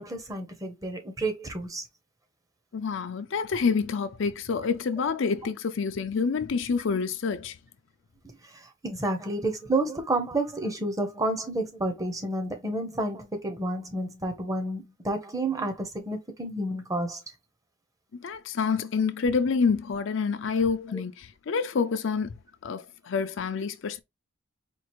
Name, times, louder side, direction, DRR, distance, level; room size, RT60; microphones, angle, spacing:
voice 1, 0.0-1.9 8.2-17.2 20.9-21.0, right 2 dB, 15° right, 0.8 m, -30 dB
voice 2, 2.7-7.6 18.1-22.3 22.6-24.0, left 5 dB, 65° left, 0.5 m, -27 dB
4.5 x 2.4 x 3.0 m
head